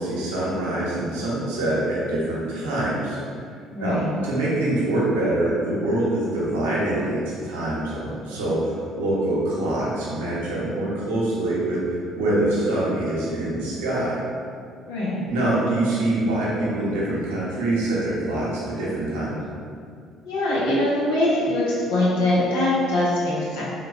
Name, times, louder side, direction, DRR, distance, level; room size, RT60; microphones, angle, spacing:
voice 1, 0.0-3.2 3.8-11.8 12.1-14.1 15.3-19.3, right 1 dB, 80° right, -7 dB, 0.7 m, -24 dB
voice 2, 3.7-4.1 14.8-15.2 20.2-23.6, left 1 dB, 75° left, -7 dB, 0.7 m, -22 dB
3.3 x 2.2 x 2.3 m, 2.3 s
hypercardioid pair, 55°, 0 cm